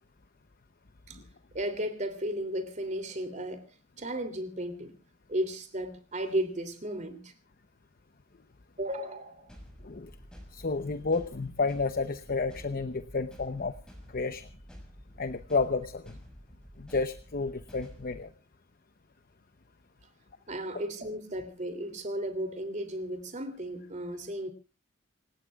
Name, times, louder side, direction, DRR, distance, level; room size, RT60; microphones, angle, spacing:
voice 1, 1.5-3.7 4.0-4.9 5.3-7.3 8.8-9.5 20.5-24.5, right 1 dB, 35° right, 9 dB, 2.9 m, -34 dB
sound 1, 9.5-18.3, equal, 5° left, 6.0 m, -50 dB
voice 2, 10.5-13.8 14.1-14.5 15.2-16.2 16.8-18.3, left 4 dB, 45° left, 10 dB, 0.8 m, -31 dB
27.5 x 18.0 x 2.4 m, 0.34 s
head